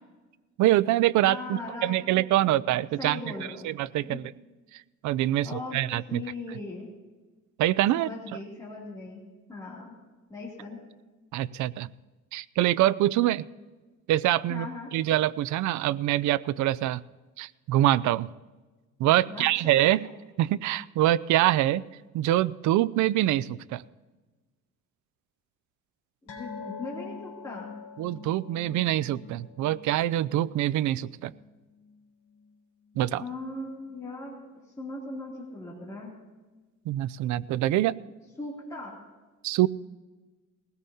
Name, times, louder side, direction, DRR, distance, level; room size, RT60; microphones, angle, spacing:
voice 1, 0.6-3.2 3.6-4.3 5.0-6.2 7.6-8.1 11.3-11.9 12.3-13.4 14.1-14.7 14.9-17.0 17.4-18.3 19.0-20.1 20.4-21.9 22.1-23.8 28.0-31.3 33.0-33.2 36.9-38.0 39.4-39.7, right 14 dB, 75° right, 19 dB, 0.5 m, -25 dB
voice 2, 1.2-2.5 3.0-3.6 4.0-4.2 5.4-5.8 6.1-6.9 7.9-9.2 9.5-9.9 10.3-10.8 14.5-14.9 19.3-19.5 19.7-20.1 26.2-27.7 33.2-34.4 34.8-36.1 38.4-39.0, left 2 dB, 10° left, -6 dB, 2.8 m, -39 dB
sound 1, 26.3-33.1 33.4-33.6 34.0-34.1, left 5 dB, 75° left, 4.0 m, -45 dB
21.0 x 17.5 x 2.8 m, 1.2 s
cardioid pair, 155°, 30 cm